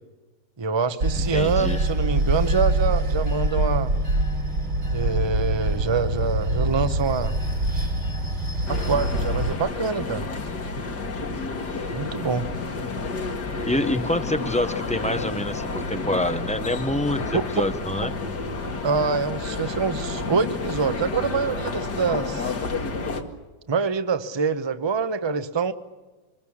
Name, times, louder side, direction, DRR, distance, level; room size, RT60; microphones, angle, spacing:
voice 1, 0.6-3.9 4.9-7.3 7.8-7.9 8.7-10.3 11.9-12.5 17.3-17.5 18.8-22.5 23.7-25.7, right 5 dB, 20° right, 10 dB, 0.7 m, -25 dB
Bell / Train, 1.0-9.5, right 1 dB, 85° right, 5.1 m, -24 dB
voice 2, 1.2-1.8 13.6-18.1, left 1 dB, 10° left, 10 dB, 0.5 m, -26 dB
sound 1, 8.7-23.2, left 3 dB, 70° left, 2.5 m, -30 dB
25.5 x 21.0 x 7.2 m, 1.2 s
omnidirectional pair, 1.9 m